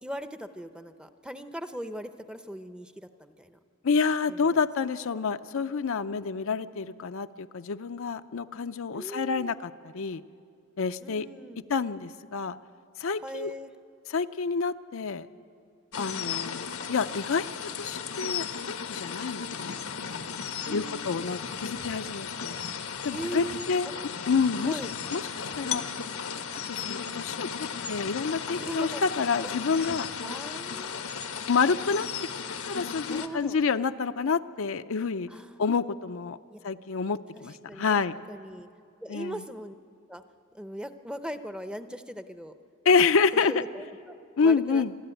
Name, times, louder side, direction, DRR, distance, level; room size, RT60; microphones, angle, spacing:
voice 1, 0.0-3.6 4.3-4.6 8.9-9.5 11.0-11.6 13.2-13.7 20.6-21.3 23.1-23.7 24.7-24.9 28.5-29.0 29.8-31.1 33.1-33.6 35.3-35.6 36.5-36.6 37.7-38.0 38.3-38.7 39.0-39.7 40.1-40.2 40.5-42.5 43.5-44.8, equal, 5° right, 9 dB, 0.6 m, -39 dB
voice 2, 3.8-10.2 10.8-11.3 11.7-12.6 13.0-13.5 14.1-15.3 16.0-19.8 20.7-22.6 23.0-23.9 24.3-24.8 25.1-25.2 25.6-25.8 26.7-27.5 27.9-30.1 31.5-32.1 32.7-35.3 35.6-36.4 36.6-38.1 39.1-39.4 42.9-43.6 44.4-44.9, left 5 dB, 70° left, 10 dB, 0.5 m, -28 dB
sound 1, 15.9-33.3, left 6 dB, 90° left, 1.1 m, -35 dB
26.0 x 12.5 x 9.0 m, 2.4 s
head